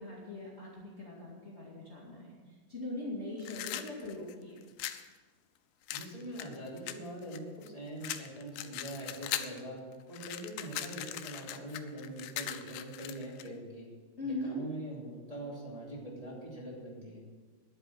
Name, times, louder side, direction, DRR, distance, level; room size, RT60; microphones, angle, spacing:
voice 1, 0.0-4.6 14.2-14.6, left 2 dB, 60° left, -5 dB, 0.7 m, -41 dB
sound 1, 3.4-5.1 5.9-7.7 8.0-9.6 9.9-13.5, left 12 dB, 85° left, 2.5 m, -40 dB
voice 2, 5.9-9.8 10.1-13.9 14.2-17.2, right 1 dB, 10° right, -6 dB, 1.7 m, -43 dB
11.0 x 8.5 x 7.4 m, 1.5 s
omnidirectional pair, 5.2 m